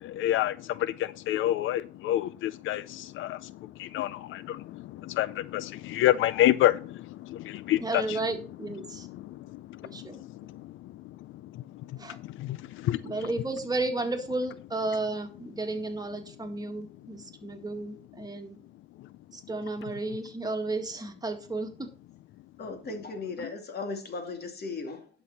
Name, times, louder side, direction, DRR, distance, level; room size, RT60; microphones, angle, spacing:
voice 1, 0.0-3.5 3.8-8.0 10.0-10.1 12.4-13.0, left 13 dB, 80° left, 0.5 m, -28 dB
voice 2, 7.8-9.1 9.8-10.2 12.0-12.2 13.0-18.6 19.3-21.9, right 2 dB, 20° right, 2.0 m, -33 dB
voice 3, 22.6-25.1, left 3 dB, 55° left, 2.6 m, -37 dB
11.5 x 6.1 x 4.2 m
cardioid pair, 90°, 20 cm